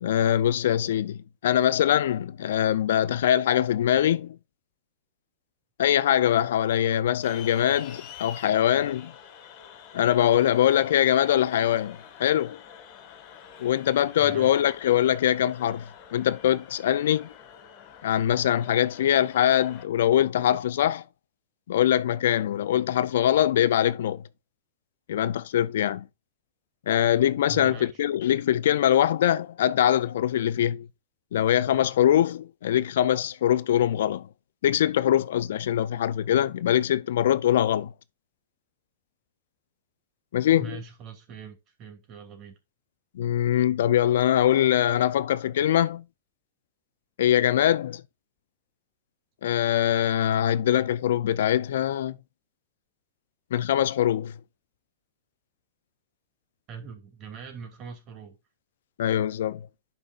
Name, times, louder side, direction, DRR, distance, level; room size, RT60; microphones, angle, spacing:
voice 1, 0.0-4.4 5.8-9.1 9.9-12.6 13.6-17.3 18.0-21.0 21.7-24.2 25.1-26.1 26.9-30.9 31.3-34.3 34.6-37.9 40.3-40.8 43.1-46.0 47.2-48.0 49.4-52.2 53.5-54.3 59.0-59.6, left 11 dB, 70° left, 0.4 m, -23 dB
sound 1, 7.2-19.8, left 8 dB, 45° left, 1.9 m, -47 dB
voice 2, 14.2-14.5 27.5-28.0 40.6-42.6 56.7-58.4, right 7 dB, 40° right, 2.7 m, -42 dB
11.5 x 5.4 x 2.4 m
hypercardioid pair, 120°, 0 cm